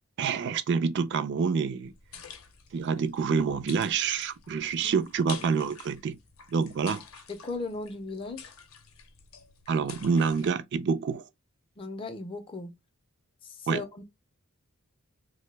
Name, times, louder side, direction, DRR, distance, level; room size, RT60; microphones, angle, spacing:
voice 1, 0.2-1.9 2.7-6.2 6.5-7.0 9.7-11.2 13.7-13.8, right 5 dB, 55° right, 0.4 m, -27 dB
sound 1, 1.8-10.5, left 7 dB, 85° left, 0.6 m, -48 dB
voice 2, 7.3-8.5 11.8-12.7 13.4-14.0, left 3 dB, 25° left, 0.4 m, -37 dB
2.6 x 2.0 x 3.2 m
head